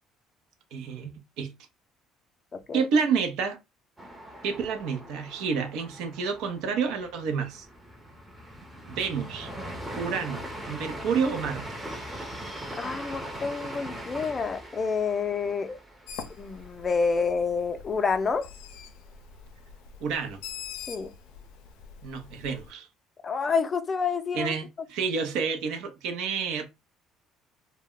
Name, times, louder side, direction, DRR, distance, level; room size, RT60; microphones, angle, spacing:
voice 1, 0.7-1.5 2.7-3.6 4.4-7.7 8.9-9.5 10.0-11.6 20.0-20.4 22.0-22.9 24.3-26.7, right 5 dB, 80° right, 0.6 m, -29 dB
voice 2, 2.5-2.8 12.8-15.8 16.4-18.5 20.9-21.1 23.2-24.5, left 5 dB, 30° left, 0.4 m, -28 dB
sound 1, 4.0-17.7 18.0-18.1 18.5-19.1, right 1 dB, 10° right, 0.7 m, -41 dB
Bird, 16.1-22.7, left 7 dB, 90° left, 0.4 m, -44 dB
2.2 x 2.1 x 3.6 m
cardioid pair, 100°, 0 cm